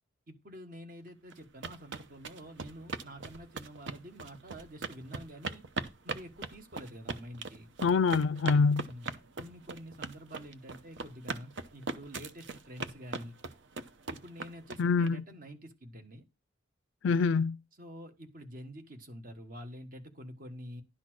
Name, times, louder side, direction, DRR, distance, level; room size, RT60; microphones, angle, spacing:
voice 1, 0.3-5.6 6.0-7.7 8.8-9.1 9.4-13.3 14.1-16.2 17.8-20.8, equal, 45° right, 1.4 m, -47 dB
sound 1, 1.3-15.1, right 4 dB, 70° right, 0.8 m, -40 dB
voice 2, 7.8-8.9 14.8-15.2 17.0-17.6, left 5 dB, 75° left, 0.4 m, -25 dB
11.5 x 4.2 x 6.2 m
head